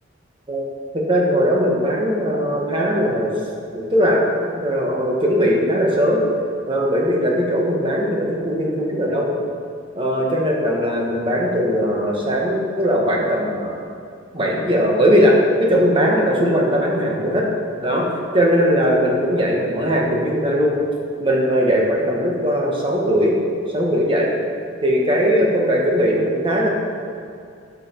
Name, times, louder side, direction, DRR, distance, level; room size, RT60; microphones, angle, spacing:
voice 1, 0.9-3.3 3.7-6.2 6.7-9.3 9.9-13.7 14.3-17.4 17.8-18.1 18.3-20.8 21.2-23.3 23.7-24.3 24.8-26.7, equal, 25° right, -2 dB, 1.5 m, -19 dB
11.0 x 6.7 x 4.6 m, 2.4 s
head